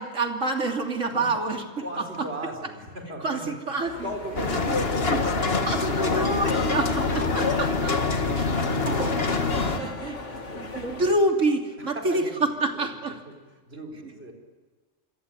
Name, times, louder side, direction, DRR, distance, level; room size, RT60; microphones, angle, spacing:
voice 1, 0.0-2.3 3.2-4.1 4.6-4.8 5.7-8.0 8.3-8.5 8.8-9.2 9.6-10.2 10.5-13.2, right 2 dB, 80° right, 3 dB, 3.2 m, -27 dB
voice 2, 1.8-3.5 4.0-5.7 8.0-8.9 9.6-10.5 12.0-12.4 13.3-13.4 13.7-14.3, right 1 dB, 55° right, 3 dB, 5.2 m, -38 dB
sound 1, 3.8-11.1, left 2 dB, 70° left, 2.8 m, -39 dB
sound 2, 4.4-9.8, left 4 dB, 50° left, 2.0 m, -25 dB
27.5 x 22.0 x 9.4 m, 1.3 s
omnidirectional pair, 1.3 m